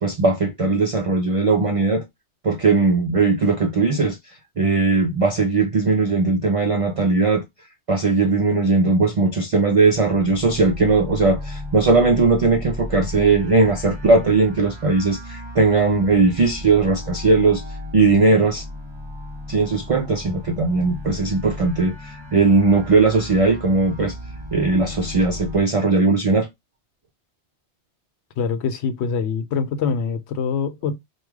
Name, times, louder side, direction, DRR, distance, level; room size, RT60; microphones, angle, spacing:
voice 1, 0.0-2.0 2.4-4.2 4.6-7.4 7.9-17.6 17.9-18.6 19.5-24.1 24.5-26.5, right 3 dB, 60° right, 0.3 m, -18 dB
sound 1, 9.7-25.6, left 1 dB, 25° right, 0.9 m, -35 dB
voice 2, 28.4-31.0, left 6 dB, 75° left, 0.8 m, -24 dB
3.1 x 2.3 x 3.4 m
omnidirectional pair, 1.2 m